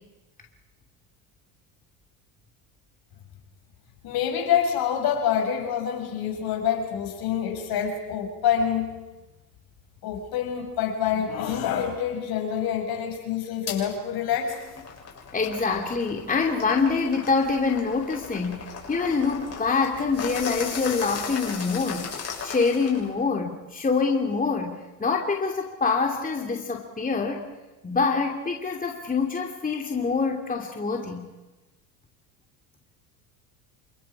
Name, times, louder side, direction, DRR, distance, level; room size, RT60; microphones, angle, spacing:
voice 1, 4.0-8.9 10.0-14.6, left 8 dB, 55° left, 4 dB, 6.3 m, -26 dB
sound 1, 13.7-13.8 14.3-23.1, left 5 dB, 35° left, 7.5 m, -37 dB
voice 2, 15.3-22.1 22.4-24.7 25.0-27.4 27.8-31.2, left 4 dB, 20° left, 1 dB, 2.9 m, -25 dB
29.0 x 26.0 x 4.9 m, 1.1 s
hypercardioid pair, 80°, 45 cm